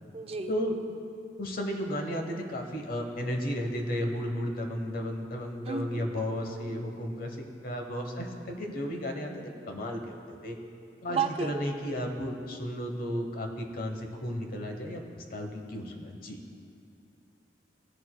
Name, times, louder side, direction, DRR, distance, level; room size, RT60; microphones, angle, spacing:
voice 1, 0.1-0.5 5.7-6.0 11.1-11.6, right 5 dB, 35° right, 6 dB, 0.4 m, -32 dB
voice 2, 1.4-10.6 11.0-16.4, equal, 55° left, 3 dB, 1.0 m, -34 dB
17.0 x 6.6 x 2.2 m, 2.5 s
head